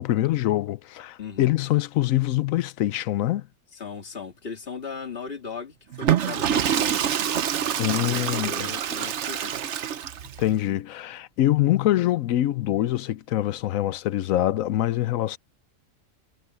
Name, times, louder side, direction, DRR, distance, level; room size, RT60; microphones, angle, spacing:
voice 1, 0.0-3.5 7.8-8.7 10.4-15.4, left 14 dB, 85° left, 1.0 m, -24 dB
voice 2, 1.2-1.5 3.7-7.0 7.5-9.6, left 5 dB, 45° left, 2.4 m, -38 dB
Water / Toilet flush, 5.9-10.4, right 9 dB, 65° right, 1.0 m, -26 dB
omnidirectional pair, 1.4 m